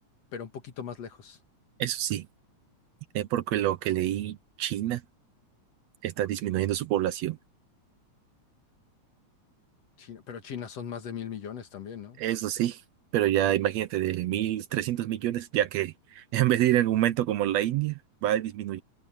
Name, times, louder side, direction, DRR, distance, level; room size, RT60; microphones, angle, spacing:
voice 1, 0.3-1.4 10.0-12.2, left 7 dB, 60° left, 2.9 m, -39 dB
voice 2, 1.8-2.3 3.1-5.0 6.0-7.4 12.2-12.8 13.1-18.8, right 13 dB, 75° right, 1.8 m, -27 dB
omnidirectional pair, 3.3 m